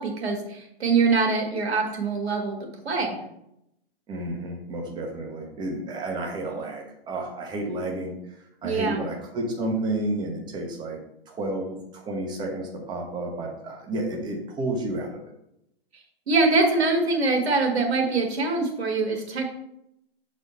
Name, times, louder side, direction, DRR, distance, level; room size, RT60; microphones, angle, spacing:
voice 1, 0.0-3.2 8.6-9.0 16.3-19.5, right 3 dB, 90° right, 2 dB, 1.8 m, -24 dB
voice 2, 4.1-15.2, right 1 dB, 15° right, 0 dB, 1.0 m, -31 dB
6.7 x 4.2 x 4.2 m, 0.81 s
hypercardioid pair, 145°, 31 cm